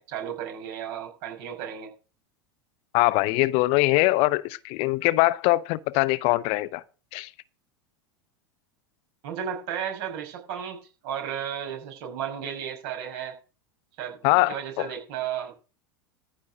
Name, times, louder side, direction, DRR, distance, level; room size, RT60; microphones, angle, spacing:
voice 1, 0.0-1.9 9.2-10.8 11.0-13.4 14.0-15.5, right 9 dB, 60° right, 5.8 m, -34 dB
voice 2, 2.9-6.8 7.1-7.3 14.2-14.9, left 20 dB, 55° left, 0.7 m, -22 dB
14.5 x 5.9 x 6.2 m
hypercardioid pair, 90°, 12 cm